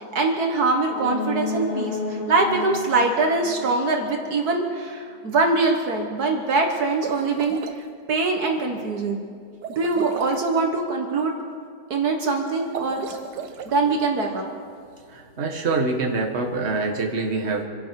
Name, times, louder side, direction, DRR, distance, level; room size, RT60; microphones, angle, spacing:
voice 1, 0.0-9.2 9.7-11.3 11.9-13.2 13.7-14.4, right 3 dB, 65° right, 2 dB, 1.8 m, -23 dB
sound 1, 0.8-4.5 4.9-5.0, left 2 dB, 25° left, 1.6 m, -32 dB
sound 2, 6.9-7.8 9.6-10.5 12.6-13.7, right 7 dB, 85° right, 1.5 m, -34 dB
voice 2, 15.1-17.6, right 3 dB, 40° right, 1 dB, 1.8 m, -25 dB
27.0 x 11.0 x 4.7 m, 2.2 s
omnidirectional pair, 1.8 m